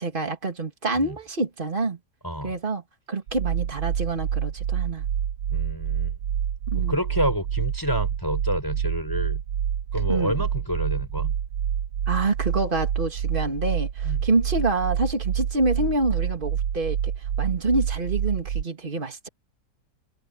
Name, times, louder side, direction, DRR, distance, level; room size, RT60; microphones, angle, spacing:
voice 1, 0.0-2.0 2.4-2.8 3.1-5.1 6.7-7.0 10.1-10.4 12.1-17.1 17.4-19.3, right 3 dB, 30° right, 2.8 m, -27 dB
voice 2, 2.2-2.5 5.5-6.1 6.7-9.4 9.9-11.3 14.0-14.2, equal, 10° left, 5.1 m, -29 dB
sound 1, 3.3-18.6, right 9 dB, 85° right, 1.5 m, -27 dB
omnidirectional pair, 1.9 m